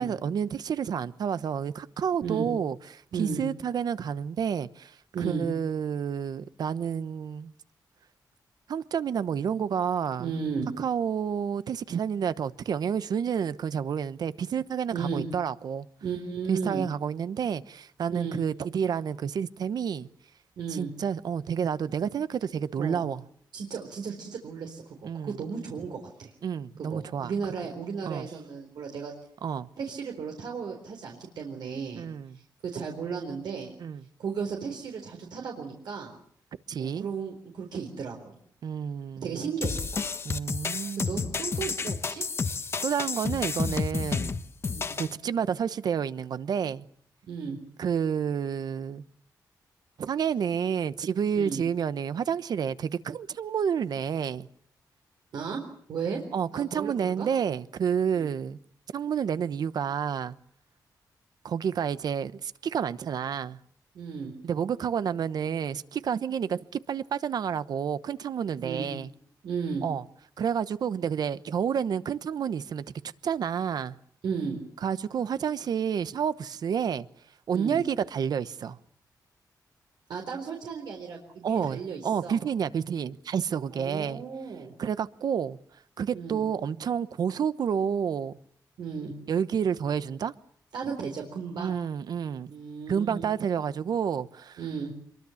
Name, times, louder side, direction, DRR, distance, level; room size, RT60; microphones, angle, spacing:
voice 1, 0.0-7.5 8.7-10.3 10.8-15.9 16.5-20.1 20.7-23.2 25.0-25.4 26.4-27.3 28.0-28.3 29.4-29.7 32.0-32.4 33.8-34.0 36.7-37.1 38.6-39.4 40.2-41.3 42.8-44.4 45.0-46.8 47.8-49.0 50.0-54.5 56.3-58.6 58.9-60.3 61.4-63.6 64.4-69.1 69.8-70.0 70.4-72.8 73.2-74.0 74.8-77.1 77.5-78.8 81.4-84.2 84.8-85.6 86.0-88.4 89.3-90.3 91.6-92.5 92.9-94.6, right 7 dB, 65° right, 1.0 m, -29 dB
voice 2, 3.1-3.4 5.1-5.4 10.2-10.7 14.9-15.3 16.0-16.9 18.1-18.4 20.6-20.9 22.8-23.0 23.5-25.0 25.2-26.3 26.9-29.1 29.8-32.0 32.6-33.7 34.2-36.1 36.8-38.4 39.2-40.0 41.0-42.2 44.7-44.9 47.3-47.6 51.3-51.6 55.3-55.6 55.9-56.2 56.5-57.3 58.1-58.3 63.9-64.3 68.6-68.9 69.4-69.8 74.2-74.6 77.5-77.8 80.1-82.4 83.7-84.7 86.1-86.4 88.8-89.1 90.7-91.7 92.5-93.2 94.6-94.9, right 6 dB, 80° right, 4.1 m, -34 dB
sound 1, 39.6-45.1, left 4 dB, 35° left, 1.2 m, -31 dB
26.0 x 23.0 x 7.1 m
wide cardioid pair, 140°, 7 cm